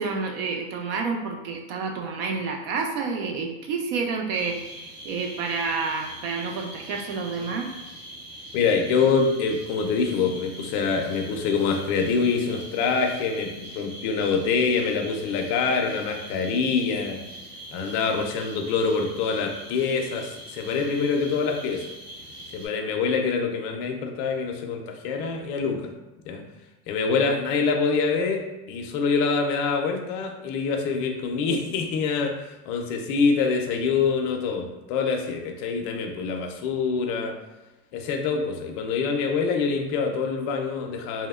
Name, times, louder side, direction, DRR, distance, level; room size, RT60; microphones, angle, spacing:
voice 1, 0.0-7.7, right 4 dB, 70° right, 2 dB, 0.5 m, -29 dB
sound 1, 4.3-22.7, right 1 dB, 35° right, 0.9 m, -42 dB
voice 2, 8.5-17.2 17.7-21.8 22.5-25.9 26.3-26.4 26.9-37.3 37.9-41.3, left 5 dB, 55° left, 3 dB, 0.4 m, -25 dB
2.8 x 2.1 x 2.3 m, 1.0 s
supercardioid pair, 160°, 30 cm